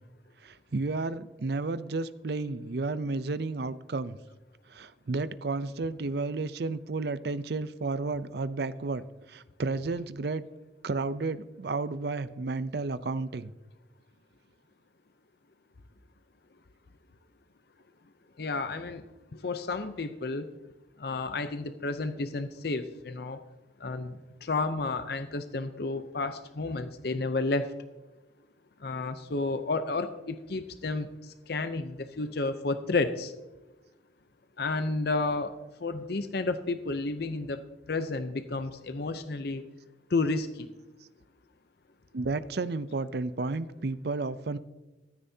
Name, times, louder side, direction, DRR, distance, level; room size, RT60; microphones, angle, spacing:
voice 1, 0.4-4.2 4.7-10.4 10.8-13.5 42.1-44.6, right 3 dB, 60° right, 15 dB, 0.5 m, -32 dB
voice 2, 18.4-19.0 19.3-20.5 21.0-23.4 23.8-27.7 28.8-33.3 34.6-35.5 35.8-37.6 37.9-39.6 40.1-40.7, left 3 dB, 55° left, 10 dB, 0.6 m, -31 dB
15.0 x 13.5 x 2.8 m, 1.1 s
head